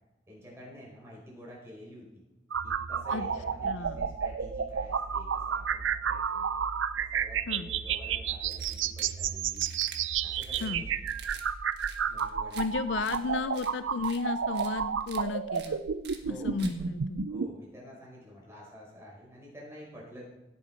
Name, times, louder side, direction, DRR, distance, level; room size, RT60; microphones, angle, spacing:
voice 1, 0.3-2.2 2.6-6.5 6.9-9.7 10.2-10.9 12.1-13.0 16.2-16.9 17.3-20.3, left 1 dB, 15° right, -5 dB, 5.1 m, -49 dB
sound 1, 2.5-17.5, right 7 dB, 85° right, 0.5 m, -31 dB
voice 2, 3.6-4.1 7.5-7.7 10.6-10.8 12.5-15.8 16.3-17.3, left 4 dB, 75° left, 12 dB, 0.5 m, -34 dB
sound 2, 8.5-9.1 9.5-10.0 10.4-10.7 11.1-11.5 11.7-12.6 13.0-13.2 13.5-13.7 14.0-14.2 14.5-14.7 15.0-15.2 15.5-15.7 16.0-16.2 16.6-16.7, right 7 dB, 60° right, 1.5 m, -47 dB
17.0 x 8.9 x 4.5 m, 1.0 s
head